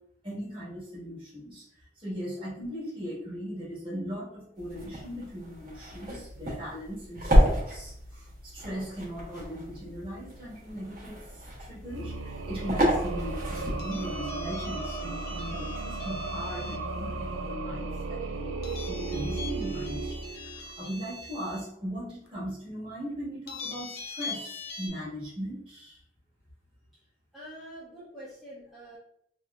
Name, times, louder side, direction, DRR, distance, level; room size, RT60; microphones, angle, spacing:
voice 1, 0.2-1.7 2.0-18.6 18.9-26.0, equal, 30° right, -7 dB, 1.3 m, -39 dB
sound 1, 4.6-14.1, equal, 50° right, 1.2 m, -30 dB
sound 2, 11.8-20.8, right 3 dB, 85° right, 0.4 m, -35 dB
sound 3, 13.8-16.9 18.6-21.6 22.3-22.4 23.5-24.9, left 4 dB, 55° left, 0.5 m, -42 dB
voice 2, 27.3-29.0, equal, ahead, -9 dB, 0.6 m, -45 dB
3.4 x 2.5 x 2.3 m, 0.71 s
head